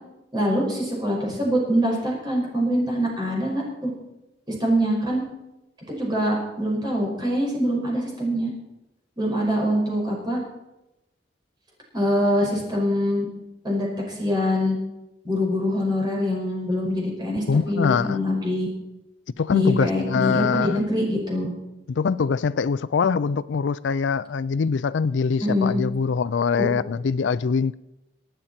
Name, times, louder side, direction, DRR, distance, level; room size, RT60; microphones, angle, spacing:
voice 1, 0.3-3.9 4.5-5.2 5.9-8.5 9.2-10.4 11.9-13.3 13.6-14.8 15.2-18.7 19.5-21.5 25.4-25.8 26.6-26.7, equal, 25° right, 5.5 m, -24 dB
voice 2, 17.5-18.2 19.4-20.8 21.9-27.8, left 5 dB, 80° left, 0.4 m, -23 dB
25.5 x 9.0 x 4.4 m
head